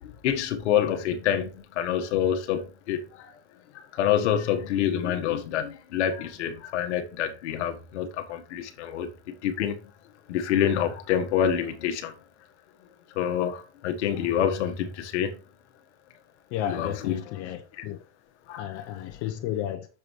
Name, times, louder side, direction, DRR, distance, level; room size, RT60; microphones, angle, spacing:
voice 1, 0.0-3.3 3.7-9.8 10.3-12.1 13.1-15.4 16.6-17.2 17.7-17.8 18.5-19.0, left 9 dB, 80° left, 1.5 m, -27 dB
voice 2, 16.5-18.0 18.6-19.9, left 11 dB, 60° left, 1.1 m, -32 dB
6.9 x 5.0 x 4.6 m
supercardioid pair, 105°, 34 cm